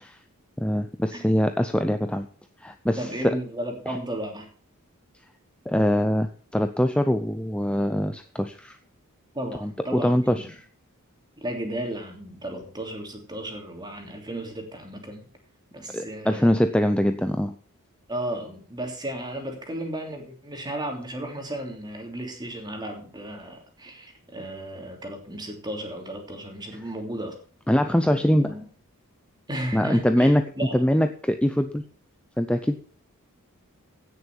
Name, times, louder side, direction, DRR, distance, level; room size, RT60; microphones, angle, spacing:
voice 1, 0.6-2.3 2.6-3.4 3.9-4.0 5.7-8.8 9.6-10.6 15.9-17.5 27.7-28.6 29.7-31.8 32.4-32.8, equal, 5° left, 7 dB, 0.6 m, -23 dB
voice 2, 3.0-4.5 9.3-10.5 11.4-15.3 15.7-16.6 18.1-27.4 28.4-28.6 29.5-30.9, right 1 dB, 20° right, 3 dB, 3.0 m, -34 dB
16.5 x 6.8 x 6.1 m, 0.44 s
head